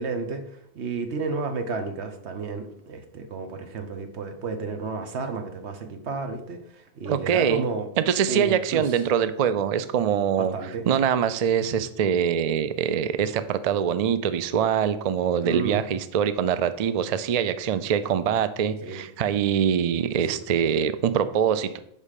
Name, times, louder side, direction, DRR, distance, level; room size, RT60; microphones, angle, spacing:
voice 1, 0.0-7.9 8.3-9.0 10.4-10.9 15.4-15.8 18.8-19.0 20.1-20.4, right 4 dB, 85° right, 7 dB, 1.2 m, -32 dB
voice 2, 7.1-7.7 8.0-10.5 10.9-21.8, right 8 dB, 50° right, 12 dB, 0.4 m, -24 dB
5.5 x 5.0 x 6.4 m, 0.74 s
omnidirectional pair, 1.1 m